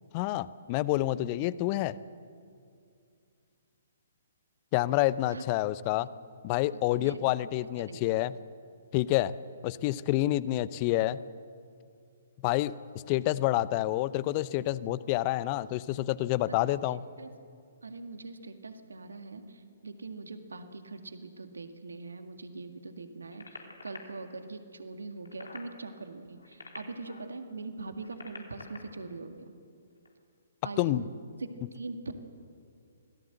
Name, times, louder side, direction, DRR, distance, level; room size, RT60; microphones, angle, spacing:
voice 1, 0.1-2.0 4.7-6.1 6.4-8.3 8.9-9.3 9.6-11.2 12.4-12.7 13.1-17.0 30.8-31.0, left 15 dB, 35° left, 18 dB, 0.7 m, -28 dB
voice 2, 16.5-17.3 17.8-29.5 30.6-31.1 31.4-32.1, right 3 dB, 75° right, 7 dB, 1.9 m, -42 dB
sound 1, 23.3-24.0 25.1-25.7 26.3-27.3 27.9-28.8 30.0-30.1, left 3 dB, 80° left, 3.4 m, -47 dB
25.5 x 17.5 x 7.9 m, 2.4 s
figure-of-eight pair, 125°, 0 cm